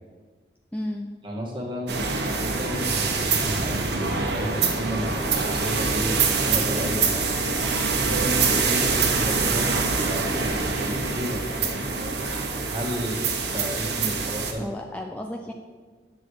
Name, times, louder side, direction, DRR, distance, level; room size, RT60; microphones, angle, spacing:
voice 1, 0.7-1.1 14.3-15.5, left 1 dB, 10° left, 1 dB, 0.4 m, -33 dB
voice 2, 1.2-2.1 2.4-7.3 7.9-12.0 12.7-13.2 13.5-14.6, equal, 30° right, -2 dB, 1.8 m, -32 dB
sound 1, 1.9-14.5, right 4 dB, 70° right, 1.3 m, -25 dB
10.0 x 7.0 x 4.8 m, 1.5 s
head